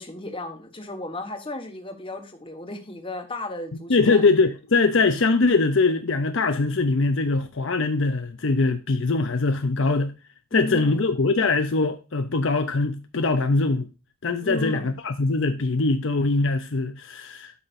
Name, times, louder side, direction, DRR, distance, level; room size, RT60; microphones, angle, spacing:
voice 1, 0.0-4.2 10.5-11.1 14.4-14.9, left 2 dB, 25° left, 1.3 m, -34 dB
voice 2, 3.9-10.1 10.5-13.9 14.2-17.5, left 3 dB, 60° left, 0.7 m, -22 dB
12.0 x 5.8 x 2.6 m
head